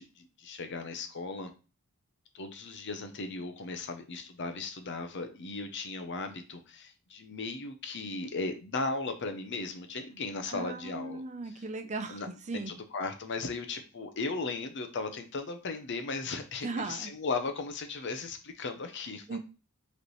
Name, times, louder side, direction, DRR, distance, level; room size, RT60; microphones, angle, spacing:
voice 1, 0.0-1.5 2.3-11.2 12.1-12.3 12.5-19.3, left 3 dB, 55° left, 7 dB, 0.7 m, -36 dB
voice 2, 10.5-12.7 16.6-17.1 19.3-19.4, right 3 dB, 35° right, 7 dB, 0.6 m, -37 dB
5.0 x 3.3 x 3.1 m, 0.33 s
head